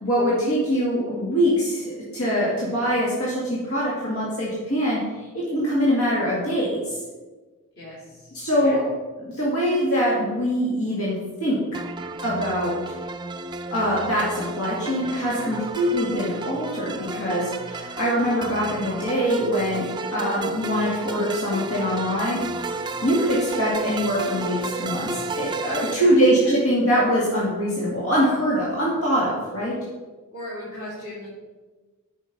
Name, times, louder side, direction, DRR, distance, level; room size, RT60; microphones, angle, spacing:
voice 1, 0.0-5.0 5.3-6.8 8.3-8.8 9.2-11.6 12.2-12.8 13.7-19.9 20.1-22.4 23.0-29.8, equal, 80° left, -6 dB, 2.2 m, -23 dB
voice 2, 7.7-8.3 8.6-8.8 25.6-26.5 30.3-31.3, left 1 dB, 50° left, -11 dB, 3.0 m, -36 dB
sound 1, 11.7-26.0, right 3 dB, 20° right, 0.4 m, -32 dB
9.7 x 5.4 x 5.3 m, 1.3 s
head